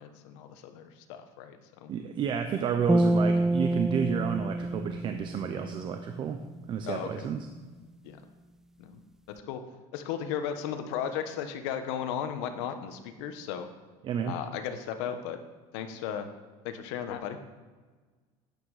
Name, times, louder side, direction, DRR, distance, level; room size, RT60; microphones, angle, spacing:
voice 1, 0.0-1.9 6.8-7.3 8.0-8.2 8.8-9.0 9.3-9.6 9.9-13.7 14.2-15.4 15.7-16.3 16.6-17.4, left 8 dB, 85° left, 8 dB, 1.2 m, -35 dB
voice 2, 1.9-6.4 6.7-7.4 14.0-14.3, right 7 dB, 35° right, 7 dB, 0.7 m, -31 dB
sound 1, 2.9-6.2, right 1 dB, 5° right, 0.3 m, -27 dB
11.5 x 9.4 x 4.9 m, 1.4 s
cardioid pair, 150°, 14 cm